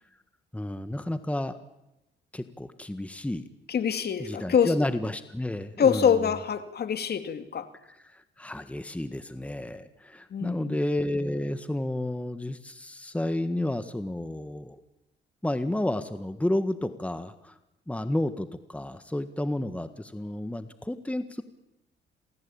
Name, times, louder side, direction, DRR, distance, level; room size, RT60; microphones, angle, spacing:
voice 1, 0.5-1.6 2.3-3.5 4.2-6.3 8.1-14.8 15.4-17.5 17.9-21.4, left 1 dB, 5° left, 10 dB, 1.6 m, -31 dB
voice 2, 3.7-4.8 5.8-7.7 10.3-10.8, left 7 dB, 55° left, 9 dB, 2.6 m, -25 dB
28.0 x 19.5 x 8.8 m, 0.92 s
cardioid pair, 90°, 20 cm